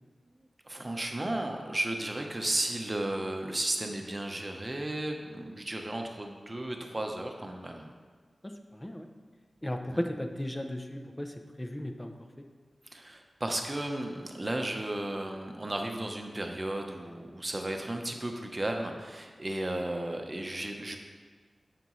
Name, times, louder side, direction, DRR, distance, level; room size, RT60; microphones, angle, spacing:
voice 1, 0.7-7.9 9.9-10.0 12.9-21.0, right 1 dB, 30° right, 3 dB, 0.9 m, -34 dB
voice 2, 8.4-9.1 9.6-12.5, left 1 dB, 15° left, 5 dB, 0.7 m, -36 dB
9.2 x 6.8 x 3.2 m, 1.5 s
wide cardioid pair, 75°, 0 cm